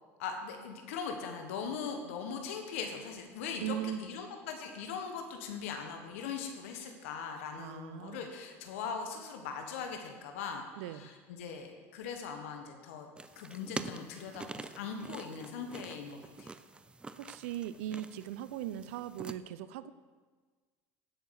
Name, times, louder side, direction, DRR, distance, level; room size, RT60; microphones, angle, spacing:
voice 1, 0.2-13.1 13.3-16.5, left 6 dB, 90° left, 4 dB, 1.4 m, -40 dB
voice 2, 3.6-4.0 7.6-8.3 10.8-11.1 17.2-19.9, right 11 dB, 85° right, 15 dB, 0.5 m, -39 dB
sound 1, 13.2-19.4, right 3 dB, 15° right, 0.5 m, -46 dB
16.0 x 6.5 x 4.8 m, 1.5 s
supercardioid pair, 100°, 7 cm